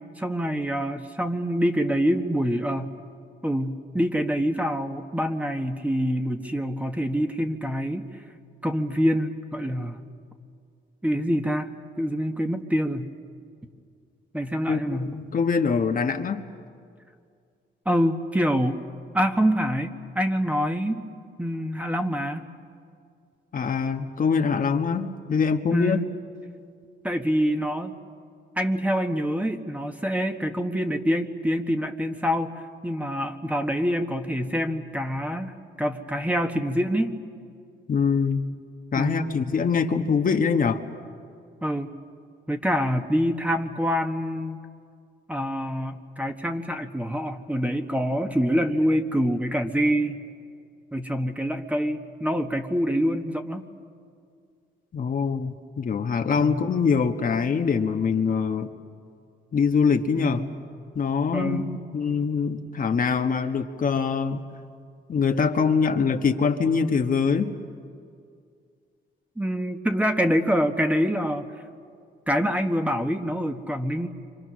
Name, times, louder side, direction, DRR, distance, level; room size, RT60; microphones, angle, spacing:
voice 1, 0.2-2.9 3.4-8.1 8.6-10.0 11.0-11.7 12.0-13.1 14.3-15.1 17.8-18.8 19.1-21.1 21.4-22.5 25.7-26.1 27.0-28.0 28.6-32.5 32.8-37.2 38.9-39.2 41.6-41.9 42.5-44.6 45.3-50.2 50.9-53.7 56.4-56.6 60.2-60.6 61.3-61.7 69.4-71.5 72.3-74.1, equal, 5° right, 6 dB, 1.5 m, -26 dB
voice 2, 14.7-16.4 23.5-26.0 37.9-38.5 38.9-40.8 54.9-58.7 59.5-60.4 60.9-64.4 65.1-67.5, left 5 dB, 45° left, 6 dB, 1.3 m, -24 dB
30.0 x 25.5 x 6.3 m, 2.3 s
cardioid pair, 90°, 20 cm